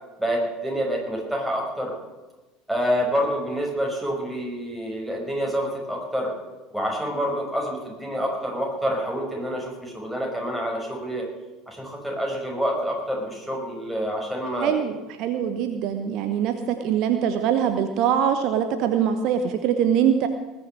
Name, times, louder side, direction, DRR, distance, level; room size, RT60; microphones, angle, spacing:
voice 1, 0.2-1.9 2.7-6.3 6.7-11.3 11.7-14.8, equal, 5° right, -1 dB, 5.9 m, -27 dB
voice 2, 14.6-20.3, right 8 dB, 55° right, 8 dB, 1.0 m, -23 dB
20.0 x 6.9 x 7.6 m, 1.2 s
figure-of-eight pair, 70°, 0 cm